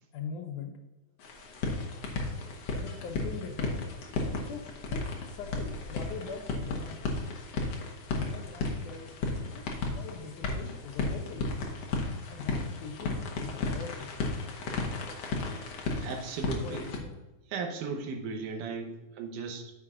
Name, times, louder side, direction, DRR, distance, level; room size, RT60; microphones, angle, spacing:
voice 1, 0.1-0.7 2.7-3.8 4.4-4.6 4.9-7.1 8.1-9.1 9.5-9.7 9.9-11.5 12.3-14.2 16.5-17.2, left 5 dB, 80° left, 4 dB, 2.4 m, -42 dB
sound 1, 1.2-17.0, left 3 dB, 60° left, 2.0 m, -34 dB
voice 2, 16.0-16.9 17.5-19.7, right 4 dB, 85° right, 3 dB, 2.4 m, -36 dB
9.6 x 7.1 x 2.5 m, 1.1 s
omnidirectional pair, 3.5 m